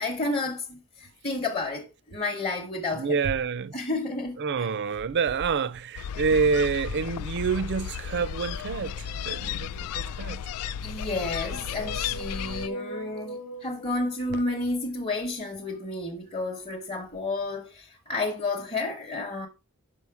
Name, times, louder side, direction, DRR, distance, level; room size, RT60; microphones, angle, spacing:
voice 1, 0.0-3.2 3.7-4.7 10.8-19.5, left 2 dB, 25° left, 0.9 m, -31 dB
voice 2, 2.9-3.8 4.4-10.4 14.3-14.4, right 5 dB, 50° right, 0.4 m, -27 dB
sound 1, 6.0-12.7, left 8 dB, 80° left, 0.3 m, -34 dB
sound 2, 8.6-10.2 11.1-15.0, right 1 dB, 60° left, 0.9 m, -42 dB
5.5 x 5.3 x 4.7 m
head